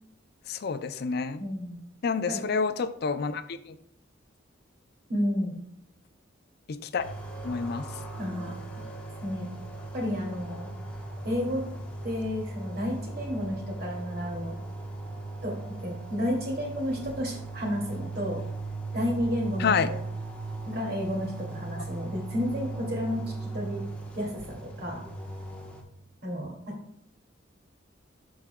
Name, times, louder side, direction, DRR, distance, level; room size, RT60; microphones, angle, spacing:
voice 1, 0.5-1.4 2.0-3.8 6.7-7.0 7.4-7.9 19.6-19.9, left 5 dB, 55° left, 11 dB, 0.4 m, -28 dB
voice 2, 1.4-1.8 2.3-2.4 5.1-5.6 8.2-8.6 9.2-9.6 9.9-10.7 11.2-11.6 12.0-14.5 15.4-18.4 18.9-20.0 20.6-23.8 24.2-25.0 26.2-26.8, left 1 dB, 55° right, -1 dB, 2.5 m, -31 dB
sound 1, 7.0-25.8, right 2 dB, 5° left, 1.1 m, -38 dB
13.5 x 4.7 x 2.3 m, 0.77 s
head